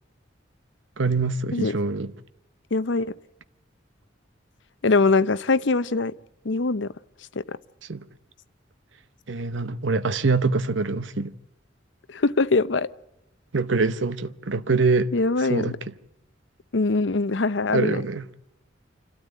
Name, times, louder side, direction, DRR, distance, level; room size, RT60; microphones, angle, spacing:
voice 1, 1.0-2.1 7.9-8.1 9.3-11.3 13.5-15.1 15.5-15.9 17.7-18.3, right 3 dB, 75° right, 0.9 m, -24 dB
voice 2, 2.7-3.1 4.8-6.1 6.4-6.9 7.4-7.6 12.1-12.9 15.1-15.6 16.7-18.0, left 3 dB, 70° left, 0.7 m, -22 dB
27.0 x 13.0 x 9.1 m
head